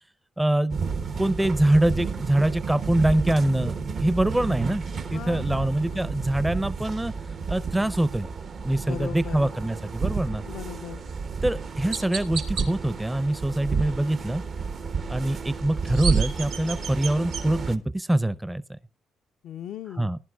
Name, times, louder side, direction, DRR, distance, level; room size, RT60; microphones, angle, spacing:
voice 1, 0.4-0.8 1.2-4.8 5.1-7.1 7.5-8.3 8.6-10.4 11.4-14.4 15.1-18.6 20.0-20.2, right 1 dB, 10° right, 0.6 m, -24 dB
sound 1, 0.7-17.8, right 5 dB, 55° right, 1.0 m, -31 dB
voice 2, 5.0-6.1 8.8-9.5 10.4-11.0 19.4-20.1, left 9 dB, 80° left, 0.6 m, -38 dB
Chirp tweet, 11.0-11.2 11.9-12.7 15.6-17.4, right 6 dB, 85° right, 2.2 m, -33 dB
19.0 x 11.0 x 2.3 m
supercardioid pair, 70°, 0 cm